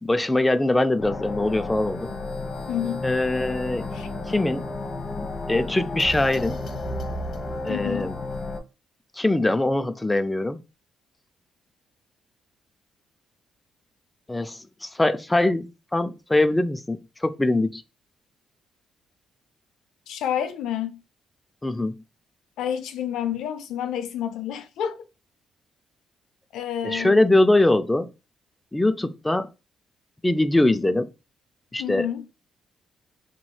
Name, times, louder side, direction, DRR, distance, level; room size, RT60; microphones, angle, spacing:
voice 1, 0.0-2.1 3.0-3.9 4.3-4.7 5.5-6.6 7.6-8.2 9.2-10.6 14.3-17.8 21.6-22.0 26.8-28.1 28.7-29.5 30.2-31.1 31.7-32.1, left 2 dB, 10° left, 0.3 m, -22 dB
sound 1, 1.0-8.6, left 2 dB, 50° left, 1.0 m, -32 dB
voice 2, 2.7-3.0 3.9-4.1 7.7-8.1 20.1-21.0 22.6-25.0 26.5-27.2 31.8-32.3, left 10 dB, 80° left, 0.4 m, -29 dB
3.0 x 2.9 x 2.3 m
cardioid pair, 90°, 0 cm